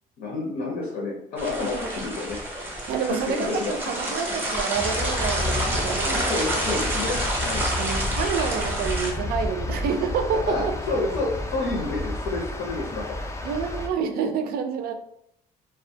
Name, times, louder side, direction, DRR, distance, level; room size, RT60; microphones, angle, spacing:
voice 1, 0.2-2.4 3.0-3.7 5.7-7.7 10.5-13.2, left 2 dB, 80° left, -4 dB, 0.7 m, -29 dB
sound 1, 1.4-9.1, right 1 dB, 15° right, 0.6 m, -29 dB
voice 2, 2.9-6.5 7.8-10.8 13.4-14.9, right 6 dB, 65° right, 6 dB, 0.4 m, -28 dB
sound 2, 4.7-13.9, left 2 dB, 15° left, 0.3 m, -31 dB
2.3 x 2.1 x 2.6 m, 0.74 s
cardioid pair, 110°, 17 cm